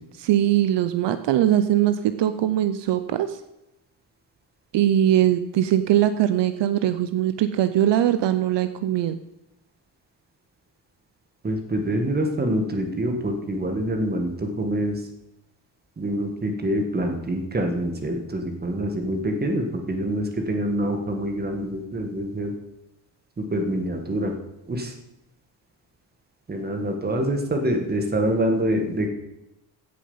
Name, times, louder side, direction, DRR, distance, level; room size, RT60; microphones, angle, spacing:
voice 1, 0.2-3.4 4.7-9.2, right 11 dB, 70° right, 11 dB, 0.7 m, -21 dB
voice 2, 11.4-15.0 16.0-22.5 23.4-24.3 24.7-24.9 26.5-29.1, right 1 dB, 20° right, 4 dB, 1.7 m, -26 dB
15.5 x 7.1 x 5.6 m, 0.91 s
wide cardioid pair, 175°, 44 cm